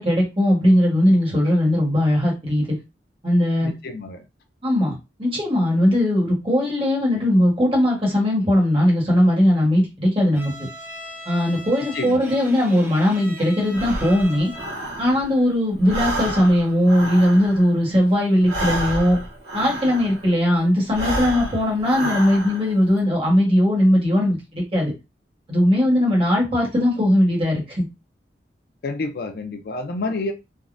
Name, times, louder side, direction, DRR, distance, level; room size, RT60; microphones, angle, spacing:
voice 1, 0.0-2.7 3.2-3.7 4.6-4.9 5.2-10.7 11.2-14.5 15.0-19.2 19.5-24.9 25.5-27.8, left 1 dB, 30° right, -3 dB, 1.2 m, -19 dB
voice 2, 3.6-4.3 11.9-12.3 25.8-25.9 28.8-30.3, left 3 dB, 55° left, 6 dB, 0.4 m, -29 dB
Bowed string instrument, 10.3-14.9, equal, 10° right, 0.6 m, -39 dB
Breathing, 13.7-15.5 15.8-20.4 20.8-22.8, right 1 dB, 65° right, 1.4 m, -30 dB
3.4 x 2.1 x 2.4 m, 0.25 s
head